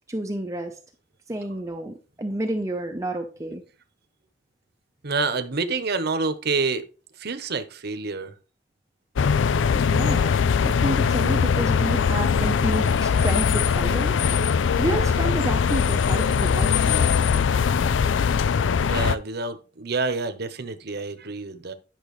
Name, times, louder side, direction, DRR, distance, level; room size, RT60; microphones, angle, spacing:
voice 1, 0.1-0.8 1.3-3.6 9.7-14.2 14.8-17.1, right 1 dB, 15° right, 0.7 m, -30 dB
voice 2, 5.0-6.8 7.2-8.3 18.8-21.7, right 4 dB, 60° right, 1.0 m, -27 dB
sound 1, 9.2-19.1, left 6 dB, 80° left, 0.4 m, -21 dB
10.5 x 6.1 x 3.2 m
head